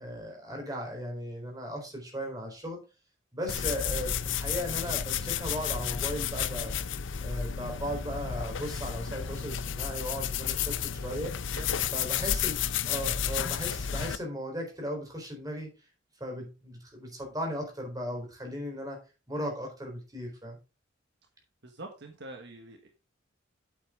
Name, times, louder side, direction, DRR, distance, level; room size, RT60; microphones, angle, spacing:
voice 1, 0.0-2.8 3.3-6.8 7.2-11.3 11.9-15.7 16.2-19.0 19.3-20.6, equal, 20° right, 2 dB, 4.1 m, -37 dB
sound 1, 3.5-14.2, left 8 dB, 70° left, 0.6 m, -32 dB
voice 2, 11.5-12.2 12.8-13.1 21.6-22.9, right 2 dB, 60° right, 4 dB, 1.5 m, -46 dB
8.8 x 8.1 x 3.8 m, 0.30 s
head